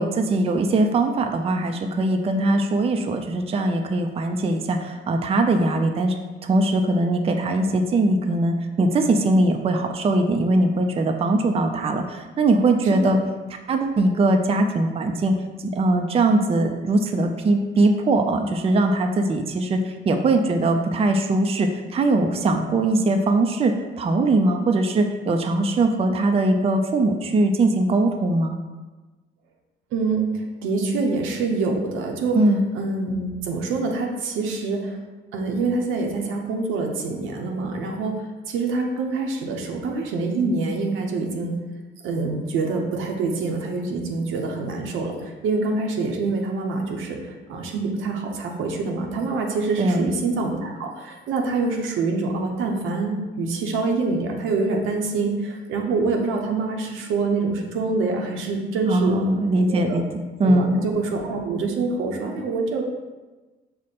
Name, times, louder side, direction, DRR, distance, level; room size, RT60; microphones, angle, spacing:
voice 1, 0.0-6.2 6.4-13.2 13.7-15.4 15.6-28.5 32.3-32.6 49.8-50.1 58.9-60.0 60.4-60.8, right 2 dB, 30° right, 5 dB, 0.4 m, -21 dB
voice 2, 29.9-32.4 32.7-35.0 35.3-41.5 42.0-59.2 59.6-60.0 60.4-62.8, right 3 dB, 85° right, 2 dB, 0.7 m, -26 dB
5.0 x 2.1 x 4.2 m, 1.2 s
cardioid pair, 90°, 20 cm